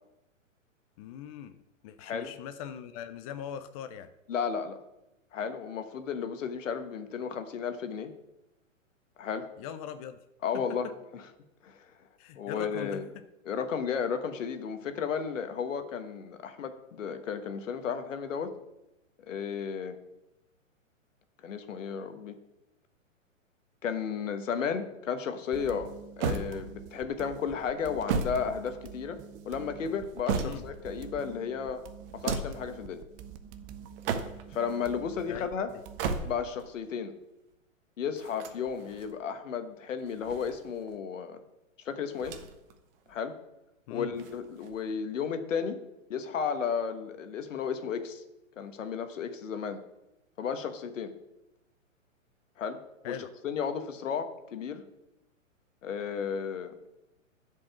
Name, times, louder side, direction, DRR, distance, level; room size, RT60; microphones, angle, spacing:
voice 1, 1.0-1.6 1.8-4.1 9.6-10.2 10.5-10.9 12.2-13.2 30.4-30.6 35.3-35.7 43.9-44.1 53.0-53.3, left 9 dB, 30° left, 10 dB, 0.4 m, -40 dB
voice 2, 2.0-2.3 4.3-4.8 5.3-8.1 9.2-9.5 10.4-10.9 11.6-11.8 12.4-13.0 13.4-18.5 19.3-20.0 21.4-22.4 23.8-25.9 26.2-29.2 29.4-31.8 32.1-33.0 34.5-35.7 36.2-37.1 38.0-41.4 41.8-42.4 43.1-43.3 43.9-45.8 46.1-48.2 48.6-49.8 50.4-51.1 52.6-52.8 53.1-53.2 53.4-54.8 55.8-56.8, left 6 dB, 65° left, 8 dB, 1.4 m, -33 dB
sound 1, 25.5-36.2, right 9 dB, 20° right, 0.5 m, -48 dB
sound 2, 26.2-27.0 27.8-29.2 29.8-30.9 32.0-32.7 33.8-34.6 35.8-36.7 38.2-39.1 40.0-41.0 42.2-42.7 43.1-43.2 44.1-44.9, right 5 dB, 45° right, 1.3 m, -35 dB
10.0 x 5.3 x 7.1 m, 0.94 s
hypercardioid pair, 120°, 40 cm